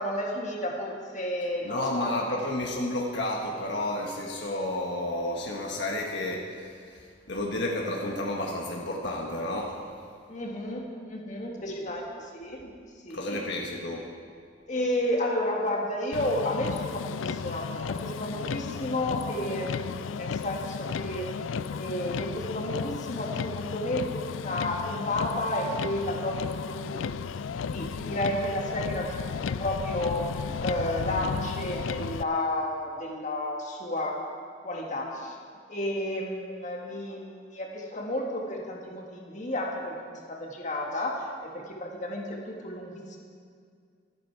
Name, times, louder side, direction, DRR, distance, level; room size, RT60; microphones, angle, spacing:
voice 1, 0.0-2.4 10.3-12.8 13.0-13.4 14.7-21.4 21.7-27.2 27.7-34.2 34.6-35.4 35.7-43.2, left 1 dB, 40° left, 0 dB, 1.8 m, -32 dB
voice 2, 1.6-10.0 13.1-14.1, left 1 dB, 60° left, -1 dB, 1.5 m, -31 dB
Motor vehicle (road), 16.1-32.2, left 6 dB, 85° left, 0.4 m, -34 dB
25.0 x 9.1 x 4.7 m, 2.2 s
head